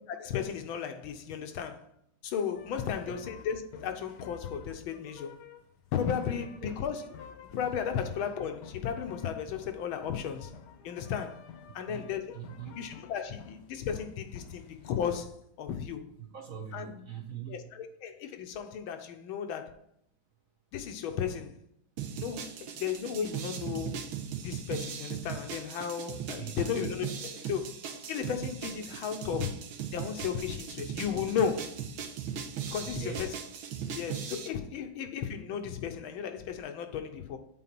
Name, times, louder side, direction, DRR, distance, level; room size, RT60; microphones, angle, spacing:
voice 1, 0.1-1.8 2.2-5.3 5.9-7.1 7.5-10.5 10.8-11.4 11.7-12.4 12.7-15.3 15.6-16.1 16.7-16.9 17.5-19.7 20.7-21.6 22.2-24.1 24.4-27.8 28.1-29.6 29.9-31.7 32.7-33.3 33.9-37.4, left 8 dB, 85° left, 1.6 m, -34 dB
sound 1, 2.5-15.2, left 7 dB, 65° left, 1.3 m, -51 dB
voice 2, 11.9-12.8 16.2-17.6 26.3-26.8 32.8-33.3, right 8 dB, 55° right, 1.0 m, -42 dB
sound 2, 22.0-34.5, right 7 dB, 85° right, 1.7 m, -39 dB
7.9 x 4.2 x 6.0 m
omnidirectional pair, 2.2 m